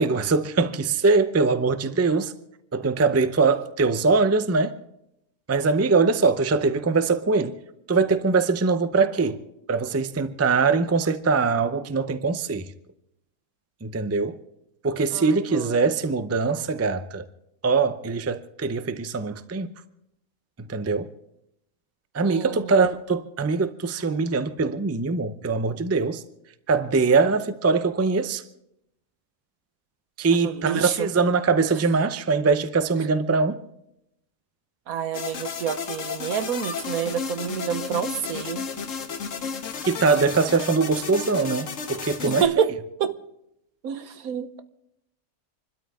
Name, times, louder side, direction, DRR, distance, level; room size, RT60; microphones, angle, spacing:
voice 1, 0.0-2.3 2.7-4.8 5.5-7.6 7.9-9.4 9.7-12.7 13.8-14.4 14.8-17.2 17.6-19.7 20.6-21.1 22.1-26.2 26.7-28.4 30.2-33.6 39.8-42.5, right 4 dB, 20° right, 0.4 m, -22 dB
voice 2, 15.1-15.8 22.2-22.8 30.4-31.1 34.9-38.7 42.3-42.7 43.0-43.2 43.8-44.6, right 8 dB, 80° right, 1.4 m, -28 dB
sound 1, 35.1-42.4, left 6 dB, 65° left, 1.4 m, -33 dB
27.5 x 12.5 x 3.6 m
omnidirectional pair, 1.5 m